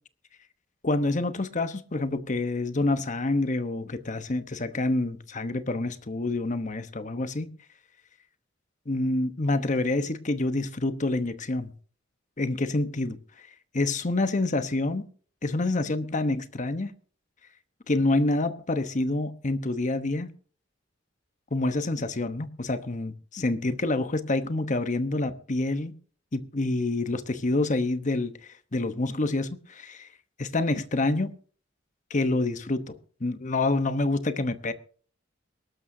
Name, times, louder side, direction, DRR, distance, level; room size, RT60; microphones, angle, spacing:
voice 1, 0.8-7.5 8.9-11.7 12.4-13.2 13.7-15.1 15.4-16.9 17.9-20.3 21.5-25.9 26.3-28.3 28.7-30.1 30.4-31.3 32.1-34.7, left 2 dB, 40° left, 1.0 m, -27 dB
22.5 x 12.5 x 2.7 m
head